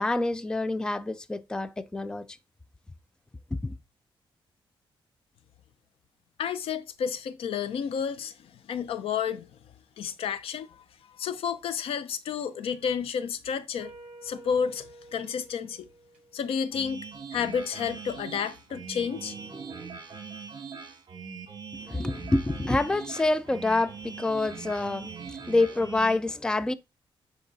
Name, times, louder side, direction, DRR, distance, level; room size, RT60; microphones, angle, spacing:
voice 1, 0.0-2.3 3.5-3.7 21.8-25.1 25.5-26.7, left 2 dB, 10° left, 0.4 m, -27 dB
voice 2, 6.4-9.5 10.0-13.9 14.2-15.9 16.3-17.1 17.3-19.3, left 7 dB, 85° left, 0.7 m, -31 dB
sound 1, 12.6-19.9, right 2 dB, 15° right, 5.1 m, -50 dB
sound 2, 16.7-26.2, right 5 dB, 45° right, 1.6 m, -42 dB
9.9 x 3.7 x 3.9 m
wide cardioid pair, 145°, 9 cm